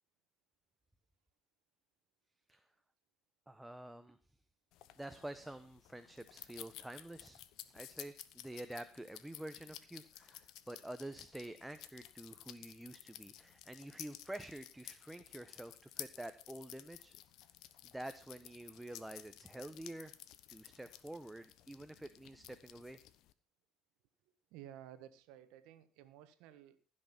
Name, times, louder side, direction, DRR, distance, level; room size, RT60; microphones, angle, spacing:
voice 1, 3.5-4.2 4.9-7.4 7.7-17.1 17.8-20.1 20.5-23.0, right 1 dB, 5° right, 10 dB, 0.9 m, -48 dB
sound 1, 4.7-23.3, left 13 dB, 65° left, 0.9 m, -54 dB
voice 2, 24.2-26.8, right 11 dB, 70° right, 11 dB, 1.4 m, -55 dB
15.5 x 6.5 x 6.0 m, 0.37 s
hypercardioid pair, 65°, 0 cm